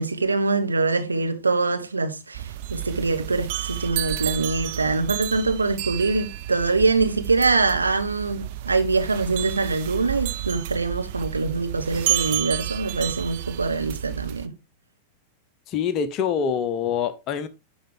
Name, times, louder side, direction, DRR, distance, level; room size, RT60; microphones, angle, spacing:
voice 1, 0.0-2.4 2.7-14.5, right 3 dB, 80° right, 1.1 m, -24 dB
sound 1, 2.3-14.5, right 14 dB, 50° right, 0.5 m, -31 dB
voice 2, 15.7-17.5, left 7 dB, 35° left, 0.8 m, -25 dB
10.5 x 4.3 x 3.5 m
figure-of-eight pair, 90°, 0 cm